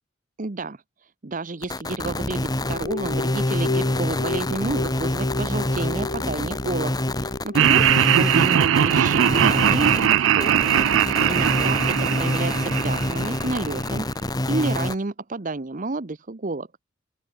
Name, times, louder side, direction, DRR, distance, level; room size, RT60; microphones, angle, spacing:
voice 1, 0.4-0.8 1.2-7.9 8.2-10.7 11.3-14.1 14.5-16.7, right 2 dB, 40° right, 0.9 m, -30 dB
sound 1, 1.6-14.9, left 1 dB, 20° left, 1.6 m, -26 dB
sound 2, 2.3-9.8, left 3 dB, 45° left, 0.6 m, -34 dB
Laughter, 7.5-13.7, right 9 dB, 80° right, 0.4 m, -20 dB
open air
head